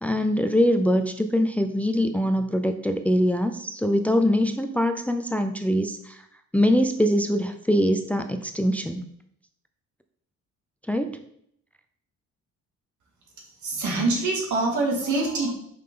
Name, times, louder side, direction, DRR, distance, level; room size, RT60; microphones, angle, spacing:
voice 1, 0.0-6.2 6.5-9.0 10.9-11.2, equal, 5° left, 7 dB, 0.5 m, -23 dB
voice 2, 13.6-15.5, right 2 dB, 75° right, 0 dB, 2.3 m, -25 dB
5.7 x 5.3 x 3.8 m, 0.69 s
cardioid pair, 90°, 30 cm